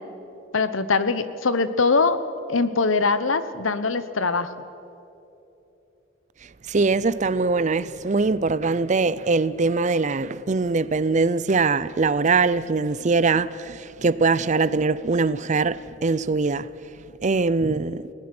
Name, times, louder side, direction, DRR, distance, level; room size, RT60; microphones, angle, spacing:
voice 1, 0.5-2.2 2.5-4.5, left 4 dB, 85° left, 1.0 m, -22 dB
voice 2, 6.7-16.7 17.2-18.1, right 4 dB, 35° right, 0.5 m, -22 dB
30.0 x 19.0 x 6.1 m
head